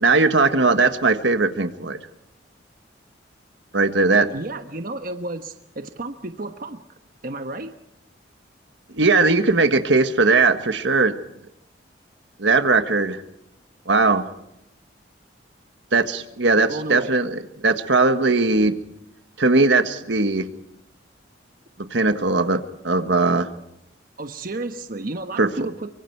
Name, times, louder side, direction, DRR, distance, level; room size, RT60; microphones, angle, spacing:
voice 1, 0.0-2.0 3.7-4.3 8.9-11.1 12.4-13.2 13.9-14.2 15.9-18.7 19.4-20.4 21.9-23.5 25.4-25.5, right 3 dB, 75° right, 9 dB, 1.5 m, -19 dB
voice 2, 4.3-6.8 7.2-7.7 16.7-17.1 24.2-26.0, right 2 dB, 50° right, 7 dB, 1.2 m, -32 dB
25.0 x 24.0 x 4.7 m, 0.82 s
head